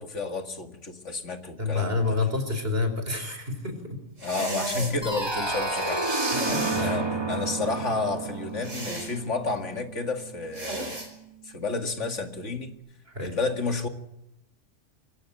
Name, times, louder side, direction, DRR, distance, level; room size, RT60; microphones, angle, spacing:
voice 1, 0.0-2.2 4.2-6.5 6.8-11.0 11.4-12.7 13.2-13.9, left 3 dB, 70° left, 6 dB, 2.5 m, -31 dB
voice 2, 1.6-4.0 6.3-6.9 13.1-13.4, left 3 dB, 50° right, 7 dB, 4.9 m, -29 dB
sound 1, 4.2-5.0 6.0-6.9 8.6-9.1 10.5-11.1, right 2 dB, 80° right, 5.9 m, -33 dB
sound 2, 5.0-9.7, right 1 dB, 20° right, 2.1 m, -31 dB
Bass guitar, 6.5-12.7, right 12 dB, 35° left, 3.5 m, -40 dB
24.5 x 16.0 x 8.9 m, 0.86 s
omnidirectional pair, 1.3 m